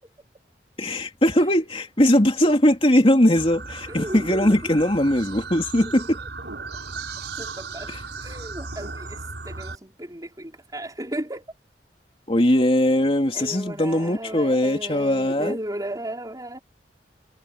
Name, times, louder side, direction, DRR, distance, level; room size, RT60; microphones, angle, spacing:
voice 1, 0.8-6.2 7.9-8.0 12.3-15.6, left 1 dB, 35° left, 3.1 m, -20 dB
sound 1, 3.4-9.8, right 3 dB, 85° right, 6.2 m, -36 dB
voice 2, 3.9-4.6 7.4-11.5 13.3-16.6, right 1 dB, 20° right, 4.8 m, -34 dB
head